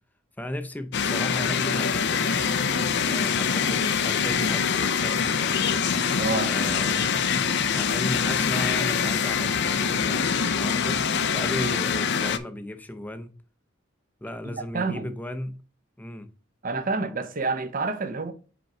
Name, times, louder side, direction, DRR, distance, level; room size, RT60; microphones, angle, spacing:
voice 1, 0.4-2.4 3.1-5.6 6.4-7.1 7.7-11.0 11.3-13.3 14.2-15.6 16.0-16.3, left 1 dB, 10° left, 0.6 m, -35 dB
sound 1, 0.9-12.4, left 6 dB, 55° left, 0.5 m, -24 dB
voice 2, 6.1-6.5 14.4-15.1 16.6-18.3, right 3 dB, 45° right, 0.8 m, -28 dB
5.2 x 4.5 x 4.8 m
head